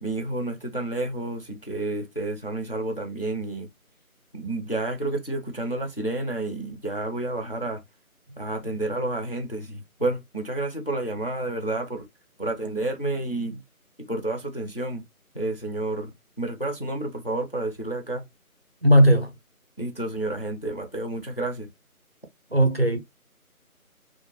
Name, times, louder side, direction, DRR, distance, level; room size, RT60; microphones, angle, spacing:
voice 1, 0.0-3.7 4.3-7.8 8.4-12.1 12.4-13.6 14.0-15.0 15.3-18.2 19.8-21.7, right 2 dB, 45° left, 0.4 m, -30 dB
voice 2, 18.8-19.3 22.5-23.0, equal, 45° right, 0.4 m, -18 dB
2.5 x 2.2 x 2.7 m
figure-of-eight pair, 170°, 44 cm